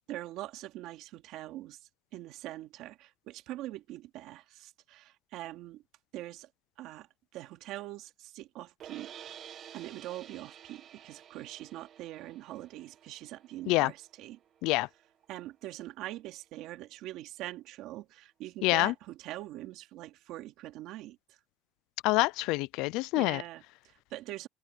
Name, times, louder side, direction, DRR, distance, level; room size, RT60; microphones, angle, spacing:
voice 1, 0.1-1.8 2.1-5.8 6.1-6.5 6.8-7.1 7.3-14.4 15.3-21.4 23.1-24.5, right 15 dB, 65° right, 2.7 m, -43 dB
sound 1, 8.8-15.0, right 9 dB, 45° right, 1.8 m, -51 dB
voice 2, 18.6-18.9 22.0-23.4, left 22 dB, 75° left, 0.4 m, -26 dB
cardioid pair, 145°, 0 cm